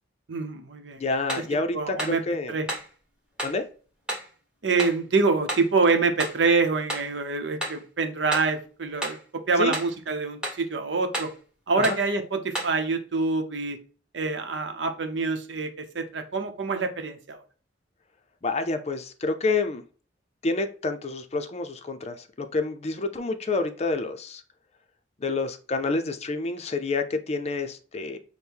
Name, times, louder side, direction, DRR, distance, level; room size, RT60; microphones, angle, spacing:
voice 1, 0.3-1.0 1.3-1.4 1.7-2.2 2.5-2.7 4.6-11.3 11.7-13.8 14.1-17.4, right 4 dB, 75° right, 0.7 m, -26 dB
voice 2, 1.0-2.6 3.4-3.6 9.6-9.7 11.8-12.0 18.4-19.8 20.4-24.4 25.2-28.2, left 3 dB, 35° left, 0.5 m, -28 dB
sound 1, 1.3-1.5 2.0-2.2 2.7-2.9 3.4-3.6 4.1-4.3 4.8-5.0 5.5-5.7 6.2-6.4 6.9-7.1 7.6-7.8 8.3-8.5 9.0-9.2 9.7-10.0 10.4-10.6 11.1-11.4 11.8-12.1 12.5-12.8, equal, 5° right, 1.3 m, -32 dB
6.1 x 2.1 x 3.5 m
head